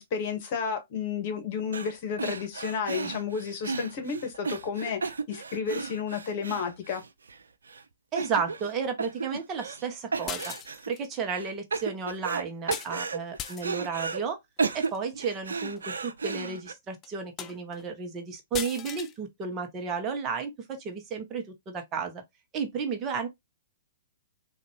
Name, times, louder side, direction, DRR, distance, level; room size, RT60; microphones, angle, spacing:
voice 1, 0.0-7.0, left 6 dB, 45° left, 1.3 m, -32 dB
sound 1, 1.7-1.9 2.2-7.4 7.7-7.8 8.2-8.7 9.0-9.8 10.1-10.9 11.3-12.4 12.7-14.2 14.6-16.7, right 4 dB, 75° right, 0.5 m, -33 dB
voice 2, 8.1-10.5 10.9-14.4 14.7-22.2 22.5-23.3, right 5 dB, 25° right, 0.9 m, -33 dB
sound 2, 10.3-11.1 12.7-12.9 13.4-13.9 14.7-15.0 15.8-15.9 16.3-16.4 17.0-17.1 17.4-17.8 18.5-19.1, left 9 dB, 25° left, 0.4 m, -38 dB
3.9 x 2.5 x 2.9 m
hypercardioid pair, 120°, 0 cm